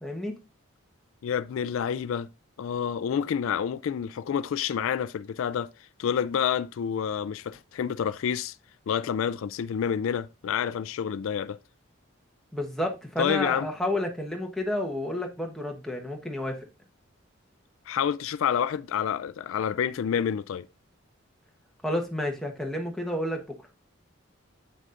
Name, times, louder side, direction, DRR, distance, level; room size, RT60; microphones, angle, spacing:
voice 1, 0.0-0.3 12.5-16.7 21.8-23.4, left 1 dB, ahead, 1.1 m, -30 dB
voice 2, 1.2-2.3 2.6-5.7 6.0-8.6 8.9-11.6 13.2-13.7 17.9-20.7, left 8 dB, 75° left, 0.3 m, -28 dB
7.9 x 6.3 x 2.5 m
head